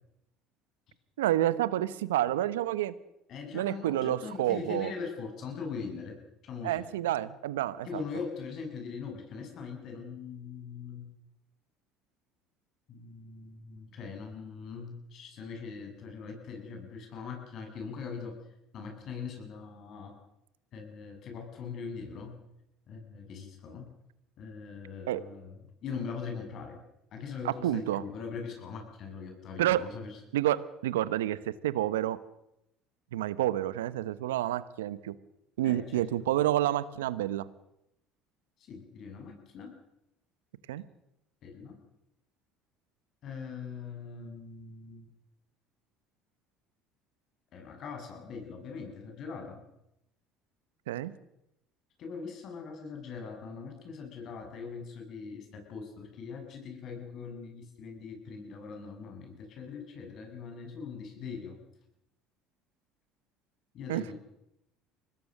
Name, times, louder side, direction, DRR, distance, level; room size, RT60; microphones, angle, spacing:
voice 1, 1.2-2.9 3.5-4.9 6.6-8.0 25.1-25.2 27.4-28.0 29.6-29.8 30.3-32.2 33.1-35.1 35.6-37.5 40.7-40.8 50.9-51.1 63.9-64.0, right 13 dB, 85° right, 17 dB, 1.0 m, -29 dB
voice 2, 3.3-6.8 7.8-11.1 12.9-18.4 18.7-20.2 20.7-22.4 22.9-23.9 24.4-26.8 27.1-30.2 35.6-36.1 38.6-39.7 41.4-41.8 43.2-45.1 47.5-49.6 52.0-61.6 63.7-64.1, left 5 dB, 55° left, 3 dB, 7.7 m, -41 dB
24.5 x 19.5 x 6.6 m, 0.85 s
hypercardioid pair, 70°, 0 cm